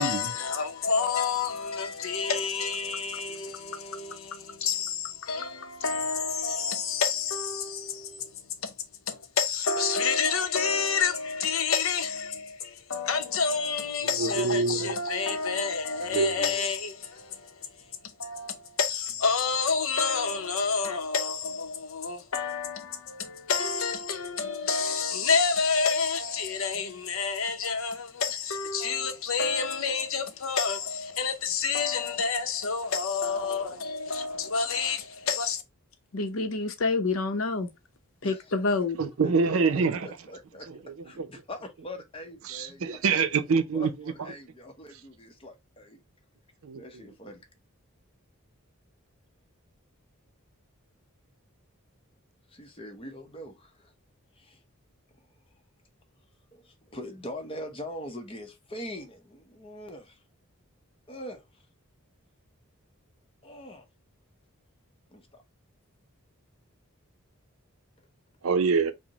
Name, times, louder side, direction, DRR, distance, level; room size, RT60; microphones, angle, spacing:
voice 1, 0.0-8.7 9.1-35.6 36.1-37.7 38.2-39.0, left 5 dB, 70° left, 0.7 m, -29 dB
voice 2, 14.2-15.0 16.1-16.3 39.0-40.1 40.7-40.8 41.2-41.3 42.5-43.9 46.6-46.8 68.4-68.9, right 5 dB, 70° right, 0.5 m, -25 dB
voice 3, 39.2-40.7 41.0-43.2 43.7-46.0 46.7-47.4 52.5-53.9 54.4-54.6 56.5-60.2 61.1-61.5 63.4-63.9 65.1-65.4, left 1 dB, 25° left, 0.7 m, -42 dB
4.9 x 2.1 x 2.8 m
head